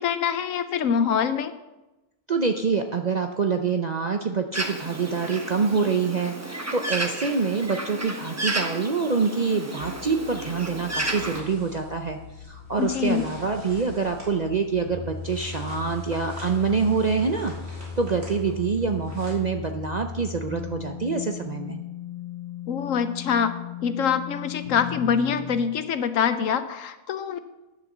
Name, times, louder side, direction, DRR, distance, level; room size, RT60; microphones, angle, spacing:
voice 1, 0.0-1.5 12.8-13.2 22.7-23.5 23.8-27.4, left 7 dB, 70° left, 11 dB, 1.1 m, -24 dB
voice 2, 2.3-21.8, right 5 dB, 45° right, 5 dB, 0.5 m, -26 dB
Bird, 4.5-11.4, right 1 dB, 15° right, 0.8 m, -32 dB
sound 1, 9.8-25.6, left 7 dB, 45° left, 1.4 m, -38 dB
sound 2, 10.9-19.3, equal, 70° right, 3.6 m, -45 dB
10.5 x 6.7 x 7.2 m, 1.0 s
omnidirectional pair, 1.4 m